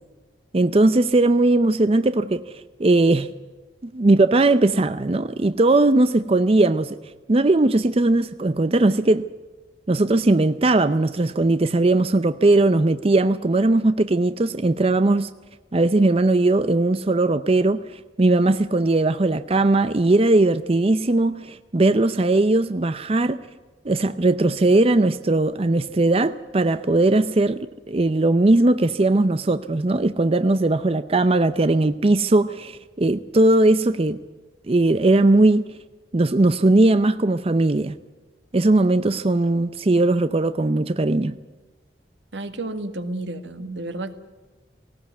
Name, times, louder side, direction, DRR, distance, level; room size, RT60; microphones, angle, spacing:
voice 1, 0.5-3.3 3.8-7.0 7.3-9.3 9.9-15.3 15.7-23.4 23.8-34.2 34.7-35.6 36.1-37.9 38.5-41.4, right 2 dB, 30° right, 12 dB, 0.6 m, -19 dB
voice 2, 42.3-44.1, right 2 dB, 85° right, 9 dB, 1.8 m, -31 dB
18.5 x 18.0 x 9.3 m, 1.3 s
head